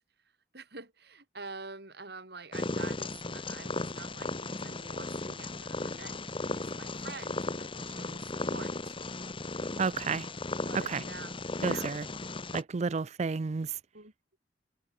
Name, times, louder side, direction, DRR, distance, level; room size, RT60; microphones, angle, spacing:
voice 1, 0.5-9.0 10.7-11.4 11.7-11.9 13.9-14.1, right 3 dB, 65° right, 5.6 m, -47 dB
Purr, 2.5-12.6, left 2 dB, 30° left, 1.4 m, -36 dB
voice 2, 9.8-10.3 10.7-11.0 11.6-12.1 12.5-13.8, right 5 dB, 40° right, 0.4 m, -31 dB
head